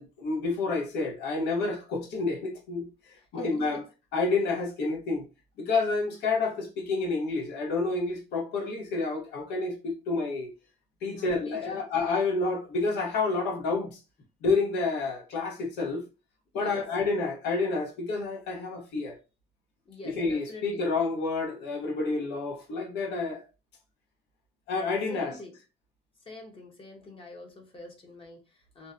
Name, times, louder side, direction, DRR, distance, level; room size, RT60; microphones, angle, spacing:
voice 1, 0.0-3.8 4.1-5.3 5.6-10.5 11.0-14.0 14.4-16.0 16.5-19.2 20.0-23.4 24.7-25.4, left 3 dB, 85° left, 0.8 m, -29 dB
voice 2, 3.3-3.8 11.1-11.8 16.5-16.8 19.9-20.9 25.1-25.5 26.2-28.9, left 2 dB, 35° left, 0.6 m, -45 dB
2.5 x 2.1 x 2.4 m
cardioid pair, 110°, 17 cm